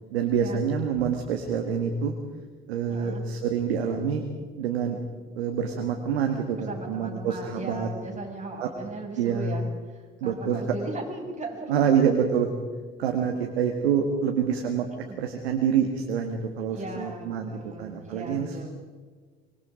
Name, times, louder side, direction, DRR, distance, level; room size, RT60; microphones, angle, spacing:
voice 1, 0.1-2.1 2.7-4.2 4.6-5.0 5.4-7.9 8.6-8.7 9.2-9.5 10.2-10.6 11.7-12.5 13.0-18.6, right 7 dB, 85° right, 3 dB, 1.8 m, -26 dB
voice 2, 2.9-3.2 6.6-12.0 13.6-13.7 15.0-15.2 16.7-18.7, right 2 dB, 25° right, 0 dB, 7.2 m, -38 dB
25.0 x 21.5 x 5.2 m, 1.5 s
hypercardioid pair, 60°, 30 cm